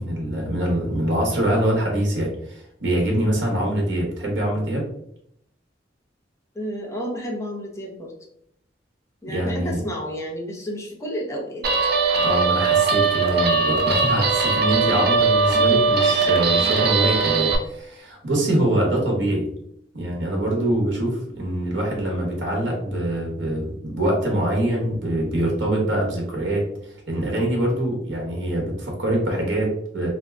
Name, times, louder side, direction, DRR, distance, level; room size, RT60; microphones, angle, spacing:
voice 1, 0.0-4.8 9.3-9.8 12.2-19.5 19.9-30.1, right 1 dB, 75° right, -1 dB, 0.9 m, -24 dB
voice 2, 6.5-8.1 9.2-11.7 14.9-15.0 15.5-16.0 16.6-16.7, equal, 15° left, -1 dB, 0.7 m, -31 dB
Guitar, 11.6-17.6, right 4 dB, 60° right, 0.5 m, -20 dB
2.6 x 2.2 x 3.3 m, 0.73 s
head